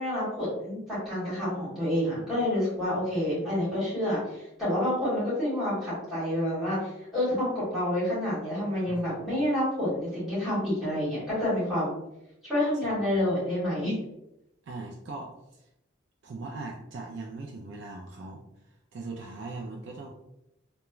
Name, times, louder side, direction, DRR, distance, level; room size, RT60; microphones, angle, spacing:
voice 1, 0.0-11.9 12.4-13.9, left 1 dB, ahead, -11 dB, 1.5 m, -28 dB
voice 2, 8.9-9.2 12.9-13.2 14.6-15.7 16.2-18.4 18.9-20.1, right 3 dB, 60° right, 0 dB, 0.3 m, -40 dB
3.0 x 2.2 x 2.3 m, 0.85 s
head